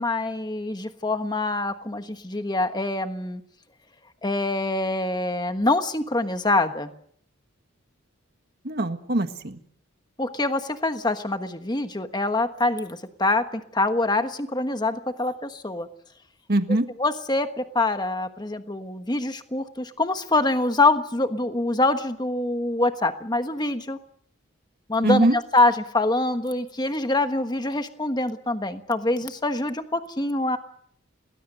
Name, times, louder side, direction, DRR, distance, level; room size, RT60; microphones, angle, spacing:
voice 1, 0.0-3.4 4.2-6.9 10.2-15.9 17.0-24.0 24.9-30.6, left 2 dB, 20° left, 8 dB, 1.3 m, -25 dB
voice 2, 8.6-9.6 16.5-16.8 25.0-25.4, right 1 dB, 45° right, 8 dB, 1.7 m, -22 dB
28.0 x 19.5 x 6.6 m, 0.63 s
head